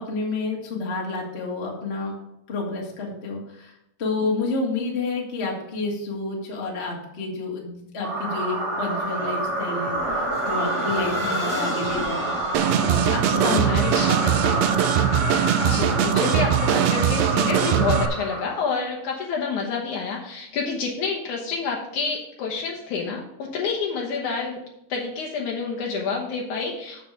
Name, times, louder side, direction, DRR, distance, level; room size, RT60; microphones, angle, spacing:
voice 1, 0.0-2.1 2.5-14.8, left 3 dB, 25° left, -1 dB, 1.5 m, -30 dB
sound 1, 8.0-18.8, right 1 dB, 30° right, 1.4 m, -27 dB
sound 2, 9.2-15.1, right 1 dB, 10° right, 1.0 m, -38 dB
sound 3, 12.5-18.1, right 10 dB, 80° right, 1.6 m, -21 dB
voice 2, 13.0-14.1 15.6-24.6 24.9-27.1, left 5 dB, 75° left, -2 dB, 2.5 m, -28 dB
7.5 x 7.2 x 5.0 m, 0.82 s
omnidirectional pair, 3.6 m